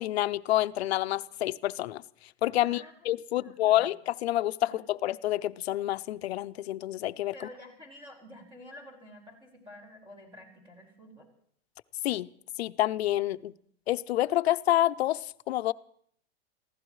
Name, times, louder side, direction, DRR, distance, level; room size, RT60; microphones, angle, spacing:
voice 1, 0.0-2.0 2.4-7.3 12.0-12.3 12.6-13.5 13.9-15.7, left 14 dB, 85° left, 0.6 m, -28 dB
voice 2, 3.3-3.8 4.6-4.8 7.3-11.3, left 1 dB, 15° right, 4.7 m, -49 dB
28.5 x 15.5 x 3.2 m
supercardioid pair, 170°, 31 cm